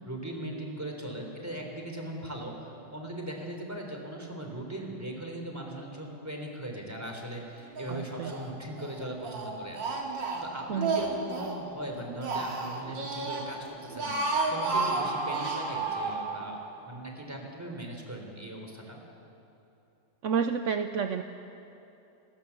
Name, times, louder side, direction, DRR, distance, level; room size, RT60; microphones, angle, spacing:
voice 1, 0.1-16.6 16.8-19.0, right 1 dB, 10° right, 2 dB, 3.6 m, -39 dB
Speech, 7.8-8.5 8.8-11.6 12.0-13.5 13.8-15.6, right 3 dB, 85° right, 3.1 m, -32 dB
voice 2, 7.9-8.3 10.7-11.0 20.2-21.2, right 6 dB, 60° right, 8 dB, 0.8 m, -30 dB
Screaming, 14.2-16.9, right 4 dB, 40° right, 3.0 m, -35 dB
27.5 x 19.5 x 7.2 m, 2.9 s
omnidirectional pair, 2.0 m